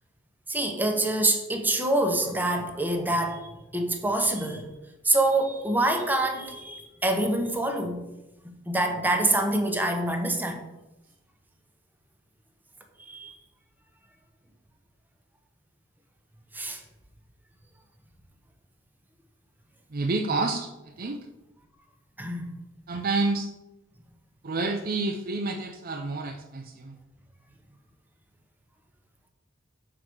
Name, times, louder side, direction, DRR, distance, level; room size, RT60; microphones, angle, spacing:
voice 1, 0.5-4.7 5.0-8.0 8.4-10.7 13.1-13.3 16.5-16.8 22.2-22.5, right 1 dB, 10° right, 4 dB, 1.0 m, -26 dB
voice 2, 19.9-21.2 22.9-23.5 24.4-27.0, right 3 dB, 50° right, 4 dB, 0.6 m, -29 dB
6.7 x 4.9 x 6.1 m, 0.98 s
head